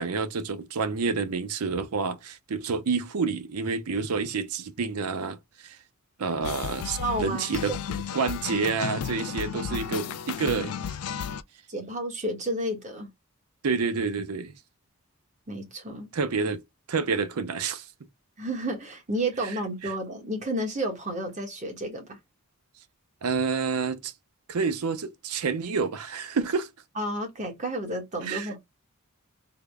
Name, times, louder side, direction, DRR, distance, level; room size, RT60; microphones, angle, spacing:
voice 1, 0.0-5.8 6.2-7.8 8.1-10.7 13.6-14.5 16.1-16.6 16.9-17.9 19.4-19.5 19.8-19.9 23.2-24.1 24.5-26.7 28.2-28.5, right 5 dB, 85° right, 0.6 m, -28 dB
sound 1, 6.4-11.4, left 7 dB, 85° left, 0.4 m, -34 dB
voice 2, 7.0-7.8 9.5-9.8 11.7-13.1 15.5-16.1 18.4-22.2 27.0-28.6, right 1 dB, 35° right, 1.2 m, -31 dB
3.5 x 2.1 x 3.4 m
head